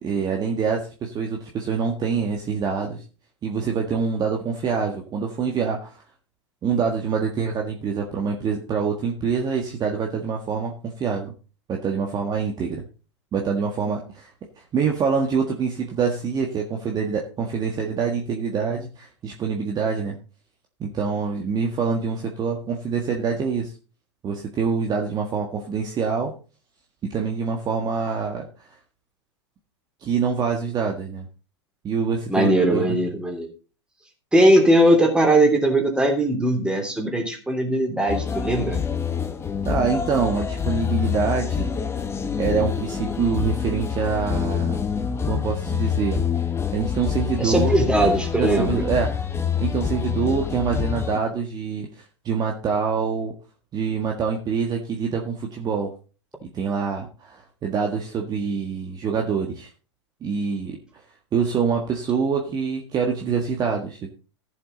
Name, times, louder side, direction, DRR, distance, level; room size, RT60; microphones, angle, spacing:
voice 1, 0.0-3.0 3.4-6.0 6.6-11.3 11.7-12.8 13.3-14.3 14.7-20.2 20.8-23.7 24.2-26.3 27.0-28.7 30.0-31.3 31.8-32.9 39.6-41.7 42.4-44.8 45.3-46.2 46.7-47.8 48.3-49.2 49.6-53.3 53.7-55.9 56.4-59.7 60.2-61.0 61.3-64.1, right 5 dB, 25° right, 2 dB, 1.6 m, -25 dB
voice 2, 32.3-33.5 34.3-38.8 47.4-48.8, right 1 dB, 5° right, 2 dB, 3.2 m, -19 dB
sound 1, 38.1-51.2, left 7 dB, 15° left, 1.4 m, -26 dB
15.0 x 7.2 x 3.9 m, 0.36 s
figure-of-eight pair, 100°, 15 cm